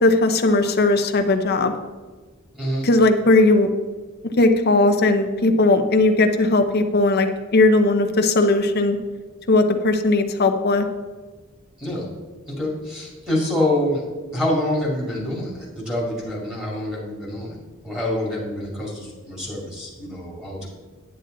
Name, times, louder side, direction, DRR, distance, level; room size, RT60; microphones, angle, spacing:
voice 1, 0.0-1.7 2.8-3.7 4.4-9.0 9.5-10.9, left 2 dB, 50° left, 6 dB, 0.8 m, -18 dB
voice 2, 12.5-14.0 14.3-17.6 17.8-20.7, left 1 dB, 5° right, -5 dB, 2.4 m, -26 dB
9.2 x 8.9 x 3.9 m, 1.3 s
head